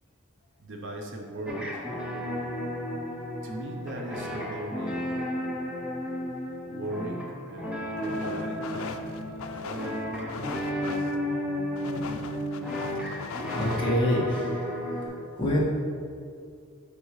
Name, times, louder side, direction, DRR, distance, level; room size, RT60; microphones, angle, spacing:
voice 1, 0.6-1.8 3.4-5.3 6.7-11.2, right 1 dB, 60° right, 2 dB, 0.7 m, -39 dB
sound 1, 1.5-15.1, equal, 5° right, 0.8 m, -33 dB
sound 2, 8.0-13.9, left 4 dB, 75° left, 0.4 m, -39 dB
voice 2, 12.9-14.7 15.0-15.6, left 1 dB, 20° left, -6 dB, 1.5 m, -28 dB
8.1 x 5.2 x 3.2 m, 2.2 s
head